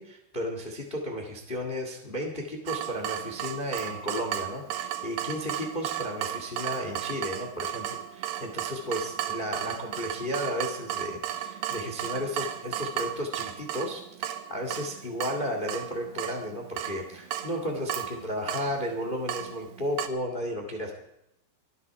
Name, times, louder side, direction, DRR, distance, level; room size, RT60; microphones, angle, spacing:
voice 1, 0.0-7.8 8.1-20.9, equal, 55° left, 3 dB, 0.5 m, -34 dB
Water tap faucet / Drip, 2.7-20.1, right 11 dB, 80° right, 2.9 m, -35 dB
25.0 x 8.4 x 4.7 m, 0.82 s
omnidirectional pair, 4.9 m